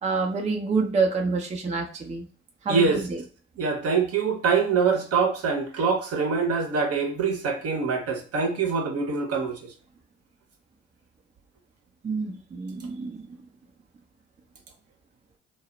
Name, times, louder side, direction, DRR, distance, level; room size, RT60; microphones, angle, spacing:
voice 1, 0.0-2.3 2.6-3.2 12.0-13.2, right 4 dB, 25° right, 0.5 m, -27 dB
voice 2, 2.7-3.0 3.6-9.7, right 5 dB, 50° right, 0.8 m, -24 dB
2.1 x 2.0 x 3.7 m
hypercardioid pair, 45°, 31 cm